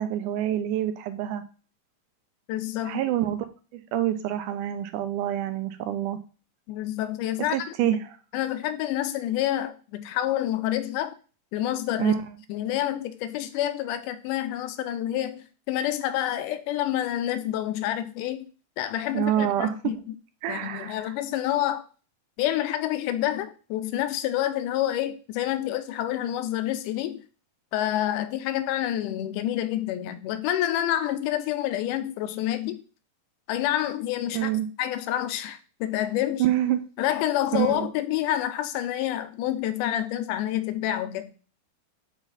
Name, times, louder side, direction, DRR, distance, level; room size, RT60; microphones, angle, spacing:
voice 1, 0.0-1.4 2.8-3.5 3.7-6.2 7.5-8.0 12.0-12.2 19.1-20.0 20.4-21.1 34.3-34.7 36.4-36.8 37.5-37.9, right 12 dB, 80° right, 10 dB, 2.1 m, -26 dB
voice 2, 2.5-3.0 6.7-8.0 8.3-11.1 11.5-12.2 12.5-18.5 18.8-20.0 20.5-21.8 22.4-27.2 27.7-32.8 33.5-34.5 34.8-36.5 37.0-41.3, left 12 dB, 85° left, 10 dB, 2.2 m, -28 dB
8.0 x 4.1 x 4.0 m, 0.36 s
omnidirectional pair, 3.7 m